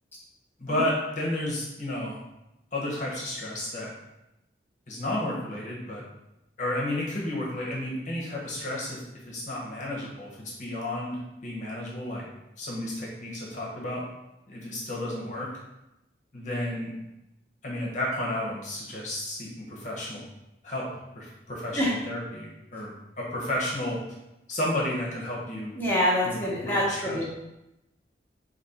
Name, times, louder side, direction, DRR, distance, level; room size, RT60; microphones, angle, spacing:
voice 1, 0.6-2.2 2.7-3.9 4.9-6.0 6.6-9.0 9.3-12.3 12.6-14.0 14.5-15.5 16.3-16.9 17.6-20.2 20.6-20.9 21.1-22.9 23.2-24.0 24.5-25.8 26.2-27.2, left 1 dB, 45° left, -4 dB, 1.0 m, -32 dB
voice 2, 25.7-27.2, equal, 10° left, -7 dB, 1.0 m, -26 dB
4.2 x 2.9 x 4.3 m, 0.91 s
head